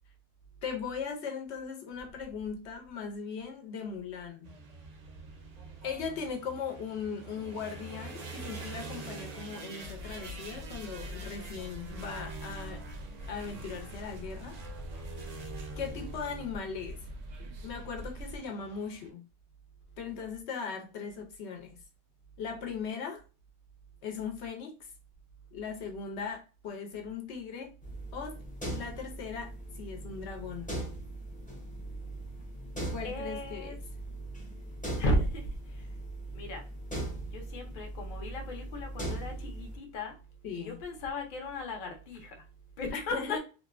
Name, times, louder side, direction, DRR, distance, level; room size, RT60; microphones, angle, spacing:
voice 1, 0.6-4.5 5.8-12.8 13.3-14.6 15.8-17.0 17.4-19.2 20.0-21.8 22.4-23.2 24.0-24.9 25.5-27.7 28.1-28.4 28.7-30.7 32.9-33.8 40.4-40.8 42.9-43.4, left 6 dB, 80° left, 0.9 m, -39 dB
sound 1, 4.4-19.1, right 3 dB, 50° right, 0.5 m, -46 dB
sound 2, 9.8-18.4, equal, 80° right, 0.9 m, -44 dB
sound 3, 27.8-39.8, right 1 dB, 10° left, 0.5 m, -40 dB
voice 2, 33.0-33.8 35.0-36.0 36.3-36.6 37.3-40.2 40.5-42.5 42.8-43.4, left 1 dB, 55° left, 0.7 m, -35 dB
2.8 x 2.1 x 2.3 m
omnidirectional pair, 1.1 m